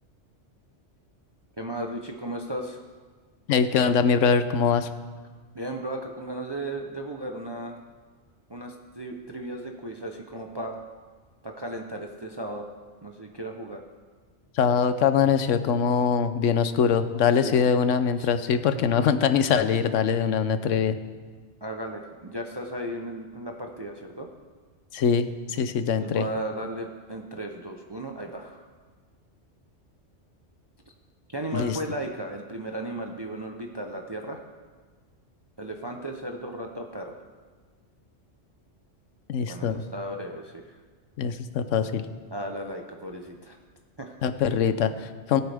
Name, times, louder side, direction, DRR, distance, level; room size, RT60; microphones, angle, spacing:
voice 1, 1.6-2.8 5.5-7.8 8.5-10.8 11.4-12.7 13.0-13.8 17.4-17.6 18.2-18.3 21.6-24.3 26.0-28.7 31.3-34.4 35.6-37.2 39.5-40.6 42.3-43.6 44.0-44.2, right 1 dB, 25° right, 2 dB, 0.7 m, -35 dB
voice 2, 3.5-4.9 14.6-21.0 24.9-26.2 31.5-31.8 39.3-39.8 41.2-42.0 44.2-45.4, left 6 dB, 85° left, 11 dB, 1.1 m, -23 dB
19.5 x 8.6 x 3.5 m, 1.5 s
omnidirectional pair, 1.2 m